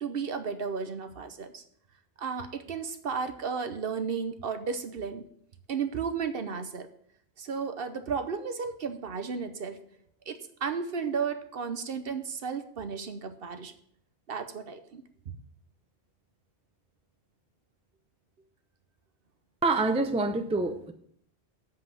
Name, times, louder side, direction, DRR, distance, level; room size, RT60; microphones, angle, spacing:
voice 1, 0.0-1.6 2.2-5.3 5.7-6.9 7.4-9.8 10.3-13.7 14.3-15.4, right 5 dB, 60° right, 9 dB, 0.9 m, -34 dB
voice 2, 19.6-20.9, right 3 dB, 5° right, 7 dB, 0.5 m, -26 dB
7.8 x 5.5 x 7.6 m, 0.66 s
omnidirectional pair, 1.1 m